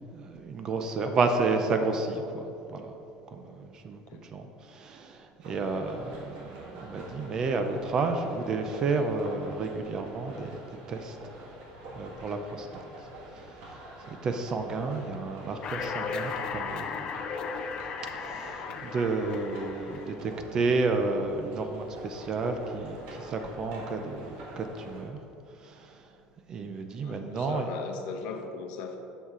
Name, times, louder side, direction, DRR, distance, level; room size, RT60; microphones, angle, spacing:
voice 1, 0.0-2.9 3.3-10.6 10.9-11.3 12.0-12.8 13.3-13.8 14.2-17.1 18.2-25.2 25.6-25.9 26.5-27.7, right 3 dB, 25° right, 6 dB, 0.4 m, -31 dB
sound 1, 5.4-25.0, right 1 dB, 60° right, 1.5 m, -46 dB
sound 2, 15.6-20.1, left 6 dB, 30° left, 0.4 m, -36 dB
voice 2, 27.0-29.0, left 5 dB, 60° left, 5 dB, 0.8 m, -38 dB
8.3 x 6.4 x 3.7 m, 2.8 s
cardioid pair, 175°, 2 cm